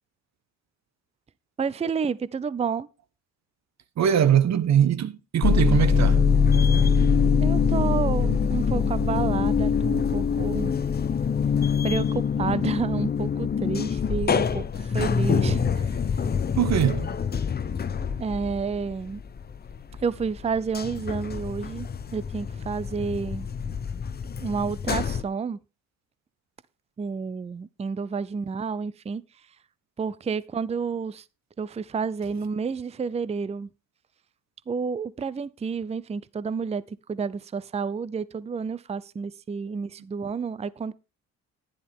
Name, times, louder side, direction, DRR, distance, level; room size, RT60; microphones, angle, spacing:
voice 1, 1.6-2.9 7.4-10.7 11.8-16.0 18.2-19.2 20.0-23.5 24.4-25.6 27.0-29.2 30.0-31.2 31.6-33.7 34.7-40.9, right 5 dB, 20° right, 0.5 m, -30 dB
voice 2, 4.0-6.2 6.6-6.7 16.5-17.1, right 9 dB, 50° right, 1.2 m, -22 dB
sound 1, 5.4-20.0 20.4-25.2, left 6 dB, 30° left, 0.8 m, -24 dB
11.5 x 10.5 x 3.6 m
supercardioid pair, 85°, 34 cm